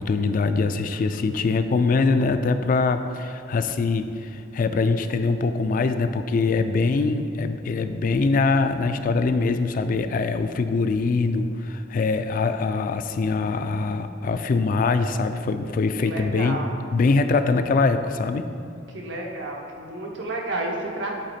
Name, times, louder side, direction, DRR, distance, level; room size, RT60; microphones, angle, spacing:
voice 1, 0.0-16.6 16.9-18.5, left 4 dB, 45° left, 9 dB, 0.3 m, -23 dB
voice 2, 16.0-16.7 18.9-21.2, right 2 dB, 85° right, -1 dB, 1.0 m, -31 dB
7.8 x 3.5 x 4.2 m, 2.4 s
head